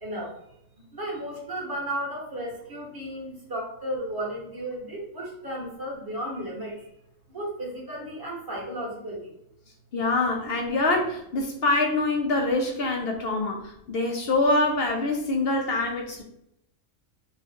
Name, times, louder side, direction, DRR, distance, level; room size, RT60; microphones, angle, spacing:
voice 1, 0.0-0.3 0.9-6.7 7.3-9.2, right 1 dB, 15° right, -4 dB, 1.1 m, -34 dB
voice 2, 9.9-16.2, left 2 dB, 60° left, 2 dB, 0.6 m, -25 dB
3.0 x 2.3 x 4.2 m, 0.77 s
omnidirectional pair, 1.4 m